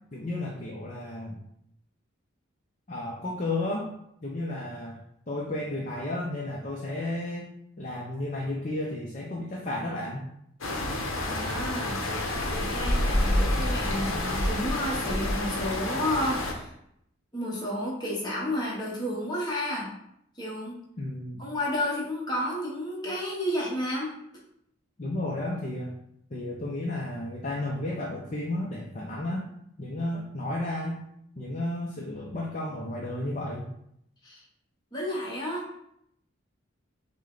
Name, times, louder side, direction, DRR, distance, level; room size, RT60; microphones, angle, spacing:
voice 1, 0.1-1.4 2.9-3.9 4.2-5.0 5.3-7.5 7.8-10.2 21.0-21.5 25.0-25.9 26.3-29.5 29.8-31.0 31.4-33.7, left 1 dB, 40° left, -2 dB, 0.6 m, -33 dB
sound 1, 10.6-16.5, left 1 dB, 80° left, 0.8 m, -28 dB
voice 2, 11.2-12.0 12.5-16.7 17.3-19.9 20.4-20.8 21.4-24.1 34.2-34.4 34.9-35.8, left 1 dB, 20° left, -5 dB, 1.1 m, -31 dB
6.1 x 2.2 x 3.9 m, 0.75 s
head